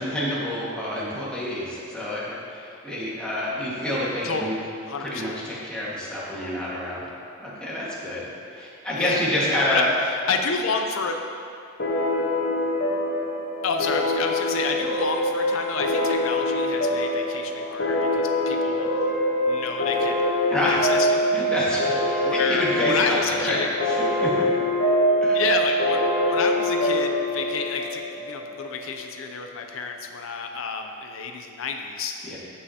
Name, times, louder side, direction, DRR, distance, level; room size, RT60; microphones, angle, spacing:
voice 1, 0.0-4.5 5.0-7.0 7.4-9.9 20.5-20.8 21.3-24.5 25.2-25.4 32.2-32.4, left 1 dB, 5° left, -8 dB, 1.7 m, -28 dB
voice 2, 4.2-5.3 9.0-9.2 9.5-9.8 10.3-11.2 13.6-18.9 19.5-20.3 20.6-21.3 22.2-23.7 25.3-26.0 26.2-32.1, left 5 dB, 80° left, 4 dB, 0.5 m, -29 dB
sound 1, 11.8-28.9, left 1 dB, 50° left, 0.9 m, -24 dB
14.5 x 5.5 x 2.8 m, 2.5 s
head